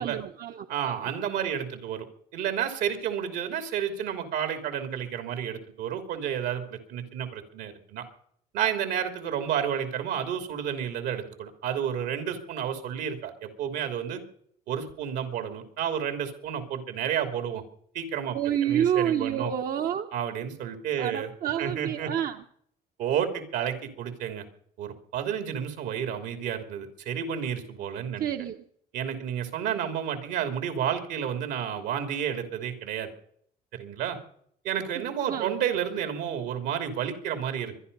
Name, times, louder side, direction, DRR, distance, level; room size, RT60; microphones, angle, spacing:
voice 1, 0.0-1.0 18.3-20.1 21.0-22.4 28.2-28.6 35.3-35.5, right 9 dB, 60° right, 5 dB, 1.0 m, -28 dB
voice 2, 0.7-2.1 2.3-8.0 8.5-14.2 14.7-17.6 17.9-18.4 18.6-19.5 20.1-21.3 21.6-22.1 23.0-24.4 24.8-28.3 28.9-33.1 33.7-34.2 34.6-37.7, right 9 dB, 85° right, 7 dB, 3.1 m, -31 dB
23.5 x 11.0 x 5.5 m, 0.66 s
cardioid pair, 110°, 17 cm